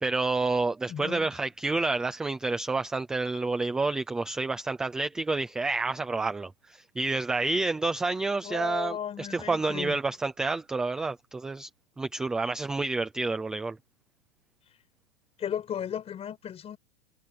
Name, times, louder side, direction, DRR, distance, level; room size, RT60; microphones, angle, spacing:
voice 1, 0.0-11.7 12.0-13.8, right 3 dB, ahead, 0.4 m, -29 dB
voice 2, 0.9-1.3 8.4-10.0 15.4-16.8, left 9 dB, 15° left, 6.2 m, -35 dB
hypercardioid pair, 160°, 36 cm